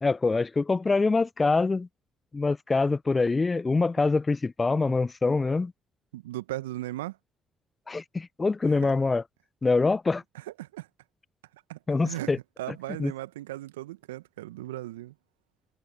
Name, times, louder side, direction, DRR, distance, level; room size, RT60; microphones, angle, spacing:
voice 1, 0.0-1.9 2.3-5.7 7.9-9.2 9.6-10.2 11.9-12.4 13.0-13.1, left 3 dB, 30° left, 0.5 m, -24 dB
voice 2, 6.1-7.2 8.6-8.9 10.3-10.9 11.5-15.1, right 16 dB, 80° right, 1.4 m, -37 dB
figure-of-eight pair, 45°, 0 cm